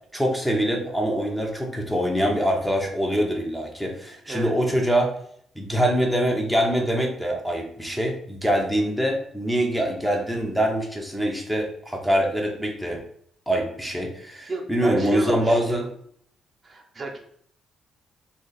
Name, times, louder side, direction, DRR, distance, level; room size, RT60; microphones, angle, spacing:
voice 1, 0.1-5.1 5.6-13.0 13.5-15.9, equal, ahead, 1 dB, 0.6 m, -24 dB
voice 2, 14.5-15.8 16.6-17.2, right 2 dB, 40° right, 2 dB, 0.6 m, -32 dB
2.6 x 2.3 x 3.9 m, 0.66 s
cardioid pair, 90°, 0 cm